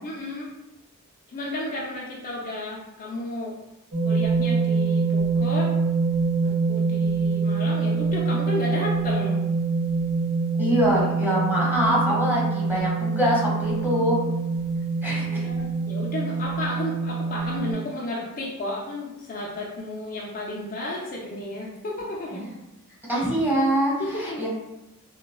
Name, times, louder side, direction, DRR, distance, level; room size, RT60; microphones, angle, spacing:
voice 1, 0.0-0.5 1.3-3.6 4.0-5.7 6.4-9.4 15.0-22.5 24.0-24.5, left 1 dB, 40° left, -4 dB, 0.5 m, -33 dB
sound 1, 3.9-17.7, right 4 dB, 80° right, 1.1 m, -25 dB
voice 2, 10.6-14.2 15.0-15.5 22.3-22.5 23.1-24.5, equal, 10° right, -6 dB, 1.2 m, -24 dB
4.1 x 2.2 x 2.2 m, 0.98 s
head